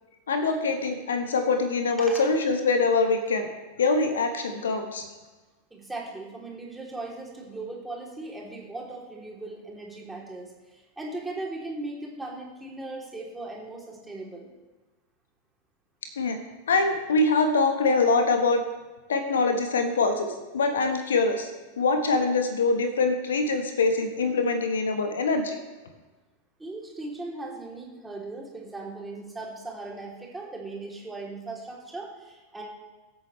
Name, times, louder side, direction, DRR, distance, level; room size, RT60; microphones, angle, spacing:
voice 1, 0.3-3.5 3.8-5.0 16.2-16.4 16.7-18.6 19.1-21.5 21.8-25.6, left 3 dB, 65° left, 6 dB, 1.3 m, -24 dB
voice 2, 5.7-14.5 26.6-32.6, right 2 dB, 5° right, -3 dB, 3.1 m, -38 dB
22.5 x 8.8 x 3.2 m, 1.2 s
figure-of-eight pair, 90°, 0 cm